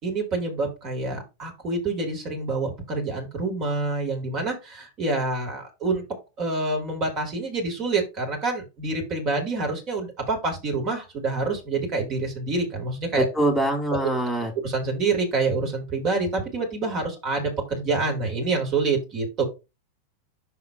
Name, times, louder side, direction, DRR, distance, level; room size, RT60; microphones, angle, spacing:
voice 1, 0.0-6.0 6.4-13.3 13.9-14.1 14.6-19.4, right 3 dB, 35° right, 3 dB, 2.2 m, -27 dB
voice 2, 13.3-14.5, right 1 dB, ahead, 2 dB, 2.2 m, -23 dB
5.9 x 3.6 x 4.7 m, 0.26 s
figure-of-eight pair, 90°, 0 cm